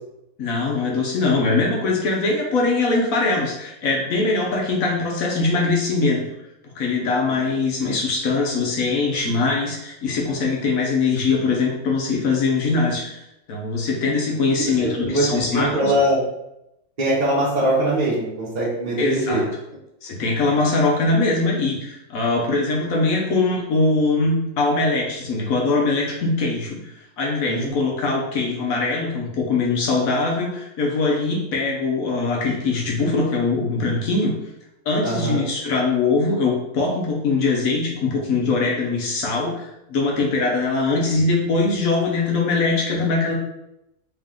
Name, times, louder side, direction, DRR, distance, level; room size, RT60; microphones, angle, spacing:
voice 1, 0.4-6.2 6.8-13.2 13.5-15.9 19.0-19.4 20.0-34.3 34.9-43.3, left 3 dB, 65° left, -1 dB, 1.3 m, -22 dB
voice 2, 15.5-16.2 17.0-19.4 27.5-27.7 35.0-35.4, right 1 dB, 30° right, -8 dB, 0.9 m, -21 dB
3.5 x 3.2 x 3.6 m, 0.86 s
omnidirectional pair, 1.6 m